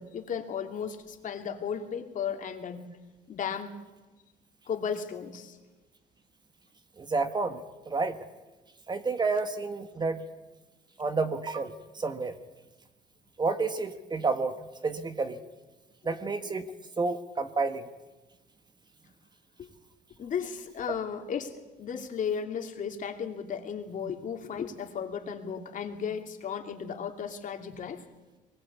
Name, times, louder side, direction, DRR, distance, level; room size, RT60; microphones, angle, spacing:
voice 1, 0.0-2.8 3.3-3.7 4.7-5.6 19.6-19.7 20.2-21.5 21.8-28.0, left 7 dB, 50° left, 4 dB, 2.8 m, -35 dB
voice 2, 7.0-7.6 7.9-8.2 8.9-10.2 11.0-12.4 13.4-15.4 16.0-16.6 17.0-17.9, right 4 dB, 25° right, 9 dB, 1.5 m, -30 dB
23.0 x 20.5 x 8.4 m, 1.2 s
cardioid pair, 110°, 17 cm